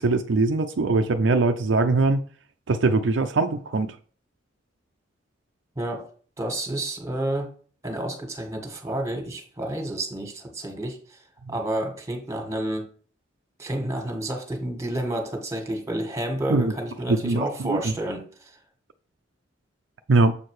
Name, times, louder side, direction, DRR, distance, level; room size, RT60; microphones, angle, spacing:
voice 1, 0.0-2.2 2.7-4.0 16.5-16.7 17.1-17.9 20.1-20.4, right 3 dB, 70° right, 0.5 m, -22 dB
voice 2, 5.7-6.1 6.4-7.5 7.8-11.2 11.5-12.9 13.6-18.6, right 1 dB, 15° right, 1.6 m, -30 dB
7.3 x 4.5 x 4.8 m
head